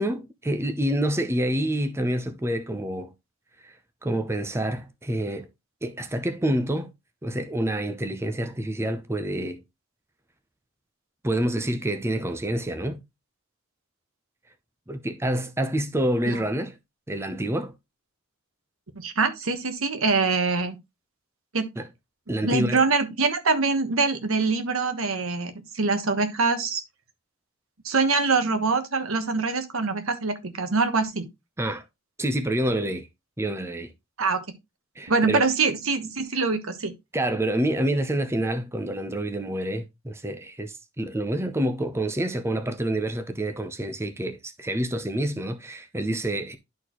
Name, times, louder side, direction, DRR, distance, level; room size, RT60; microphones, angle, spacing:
voice 1, 0.0-3.1 3.6-3.8 4.0-5.5 5.8-6.9 7.2-9.6 11.2-13.0 14.9-16.8 17.1-17.7 21.8-21.9 22.3-22.8 31.6-31.8 32.2-33.1 33.4-33.9 35.0-35.5 37.1-46.6, right 1 dB, 10° right, 0.6 m, -27 dB
voice 2, 19.0-20.8 21.5-21.7 22.4-26.8 27.8-31.3 34.2-34.4 35.1-36.9, right 4 dB, 85° right, 1.3 m, -24 dB
11.0 x 4.2 x 3.0 m
head